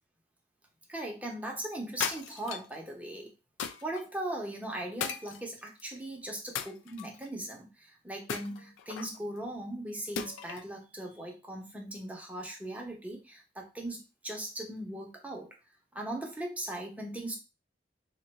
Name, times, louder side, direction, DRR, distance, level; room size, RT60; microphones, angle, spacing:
voice 1, 0.9-3.3 3.8-15.5 15.9-17.4, right 1 dB, 10° right, 0 dB, 0.6 m, -39 dB
sound 1, 2.0-2.8 3.6-4.0 5.0-5.8 6.5-7.3 8.3-9.2 10.2-10.7, left 7 dB, 80° left, 0.3 m, -37 dB
2.4 x 2.2 x 4.0 m, 0.28 s
head